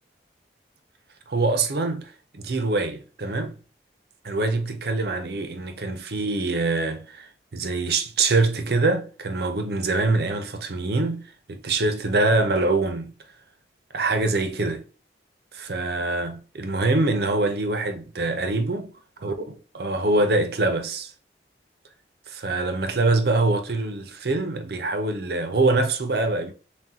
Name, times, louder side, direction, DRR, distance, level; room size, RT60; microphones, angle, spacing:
voice 1, 1.3-3.6 4.2-13.1 13.9-14.9 15.5-18.9 19.2-21.1 22.3-26.5, right 2 dB, 60° right, 0.6 m, -24 dB
6.0 x 2.3 x 2.7 m
head